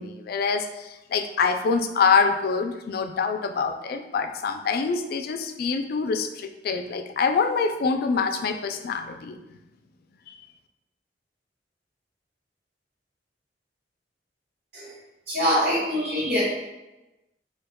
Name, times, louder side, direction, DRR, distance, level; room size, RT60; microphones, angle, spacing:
voice 1, 0.0-9.4, left 5 dB, 55° left, 6 dB, 0.3 m, -25 dB
voice 2, 15.3-16.4, equal, 60° right, -11 dB, 1.5 m, -24 dB
4.5 x 3.5 x 2.2 m, 1.0 s
head